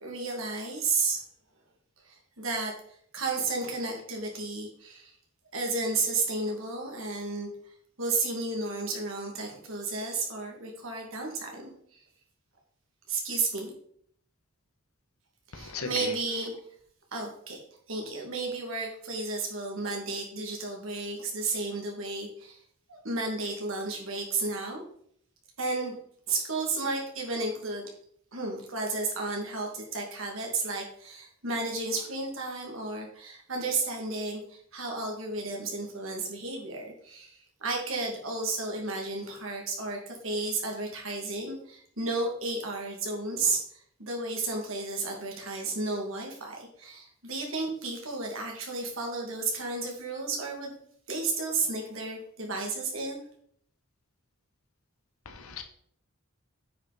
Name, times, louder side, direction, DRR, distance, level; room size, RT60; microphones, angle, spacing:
voice 1, 0.0-1.2 2.0-2.7 3.1-5.1 5.5-7.5 8.0-11.7 13.1-13.7 15.5-16.5 17.1-17.6 17.9-22.6 22.9-24.8 25.6-26.0 26.3-27.9 28.3-50.7 51.1-53.2, right 3 dB, 70° right, 0 dB, 2.6 m, -32 dB
voice 2, 15.5-16.1 55.2-55.6, left 4 dB, 85° left, 7 dB, 1.3 m, -37 dB
9.0 x 6.0 x 4.3 m, 0.64 s
head